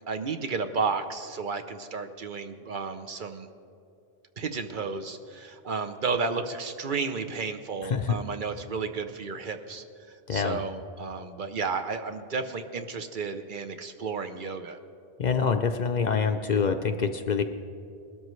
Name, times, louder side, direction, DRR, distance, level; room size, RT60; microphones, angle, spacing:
voice 1, 0.1-3.5 4.4-14.8, right 4 dB, 55° right, 8 dB, 0.8 m, -32 dB
voice 2, 7.8-8.2 10.3-10.6 15.2-17.4, left 6 dB, 55° left, 7 dB, 0.6 m, -26 dB
20.5 x 12.5 x 3.1 m, 2.5 s
omnidirectional pair, 1.0 m